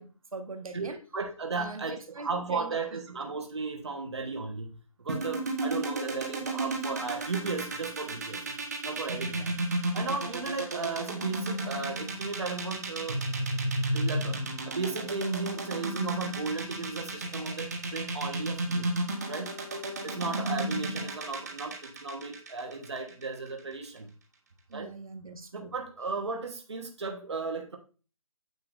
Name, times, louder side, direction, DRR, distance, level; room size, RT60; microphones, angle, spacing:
voice 1, 0.0-1.0 1.6-2.8 24.7-25.7, right 3 dB, 75° right, 6 dB, 1.4 m, -43 dB
voice 2, 0.7-4.7 5.0-8.4 8.8-13.2 13.9-18.9 19.3-19.5 20.0-24.1 24.7-24.9 25.5-27.8, right 4 dB, 50° right, 3 dB, 1.2 m, -35 dB
sound 1, 5.1-23.2, right 2 dB, 30° right, 1.3 m, -32 dB
9.3 x 7.0 x 2.5 m, 0.36 s
hypercardioid pair, 180°, 18 cm